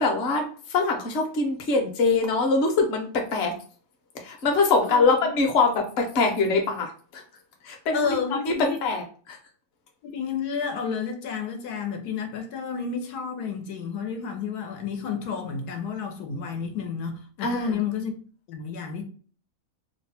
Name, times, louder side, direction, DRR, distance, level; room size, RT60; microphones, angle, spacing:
voice 1, 0.0-3.5 4.2-7.2 7.6-8.1 8.5-8.6 8.8-9.4 17.4-17.8, left 3 dB, 50° left, 1.0 m, -23 dB
voice 2, 4.9-5.3 7.9-8.8 10.0-18.2 18.5-19.0, left 6 dB, 90° left, 1.3 m, -31 dB
2.9 x 2.2 x 4.0 m
omnidirectional pair, 1.6 m